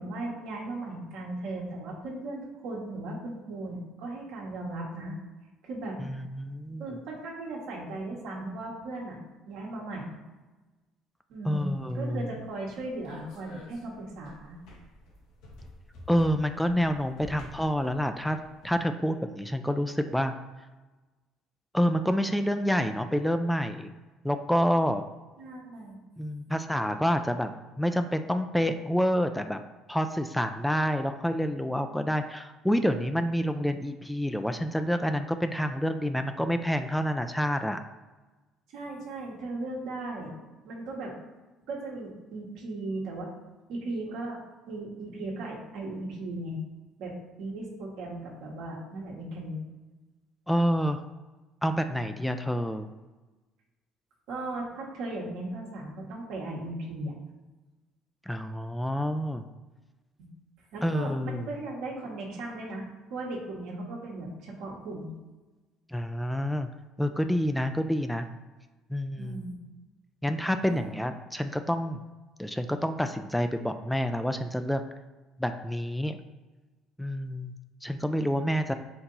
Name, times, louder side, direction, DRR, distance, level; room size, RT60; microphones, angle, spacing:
voice 1, 0.0-5.2 5.6-6.1 6.8-9.2 9.5-10.2 11.3-14.6 25.4-25.9 38.7-40.3 40.6-41.1 41.7-43.3 43.7-44.4 44.7-46.6 47.0-49.6 54.3-57.1 60.7-62.8 63.1-65.1 69.2-69.6 70.6-70.9, right 2 dB, 75° right, -2 dB, 1.3 m, -37 dB
voice 2, 6.0-6.8 11.5-12.2 16.1-18.4 18.6-20.3 21.7-23.9 24.2-25.0 26.2-27.5 27.8-29.6 29.9-37.8 50.5-51.0 51.6-52.9 58.3-59.4 60.8-61.5 65.9-66.7 67.0-68.3 68.9-69.4 70.2-72.0 72.4-74.8 75.4-76.2 77.0-77.5 77.8-78.7, equal, 5° left, 8 dB, 0.3 m, -28 dB
sound 1, 11.6-18.8, left 1 dB, 75° left, 1.0 m, -50 dB
4.4 x 2.7 x 3.9 m, 1.2 s
supercardioid pair, 75°, 0 cm